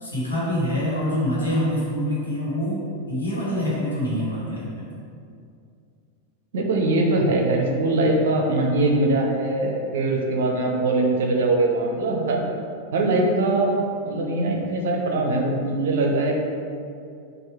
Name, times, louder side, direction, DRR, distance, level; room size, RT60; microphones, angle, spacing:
voice 1, 0.0-4.9, equal, 75° left, -7 dB, 1.4 m, -25 dB
voice 2, 6.5-12.4 12.9-16.4, right 2 dB, 60° right, 1 dB, 0.6 m, -22 dB
4.5 x 2.5 x 4.6 m, 2.4 s
figure-of-eight pair, 90°, 0 cm